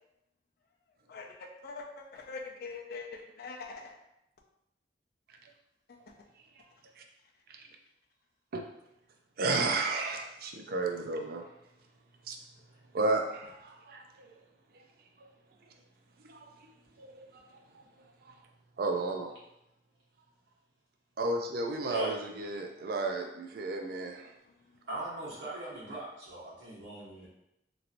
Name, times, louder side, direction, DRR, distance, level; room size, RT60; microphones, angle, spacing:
voice 1, 1.1-4.0 5.9-6.0 24.4-24.6, left 4 dB, 60° left, 2 dB, 0.4 m, -43 dB
voice 2, 9.4-11.5 12.3-12.4 12.9-14.3 16.2-16.5 17.0-17.4 18.2-18.4 18.8-19.3 21.2-24.3, right 3 dB, 55° right, 3 dB, 0.4 m, -33 dB
voice 3, 24.9-27.3, right 2 dB, 90° right, -8 dB, 1.5 m, -40 dB
3.1 x 2.8 x 2.5 m, 0.83 s
head